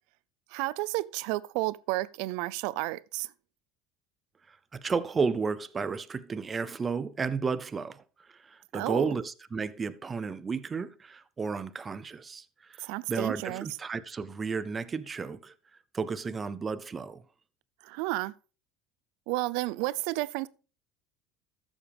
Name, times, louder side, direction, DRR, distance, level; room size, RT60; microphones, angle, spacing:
voice 1, 0.5-3.3 8.7-9.1 12.8-13.7 17.8-18.3 19.3-20.5, right 20 dB, 75° right, 0.5 m, -32 dB
voice 2, 4.5-8.0 8.3-12.8 13.1-15.5 15.9-17.2, right 5 dB, 20° right, 0.6 m, -33 dB
13.5 x 7.3 x 3.5 m
supercardioid pair, 125°, 0 cm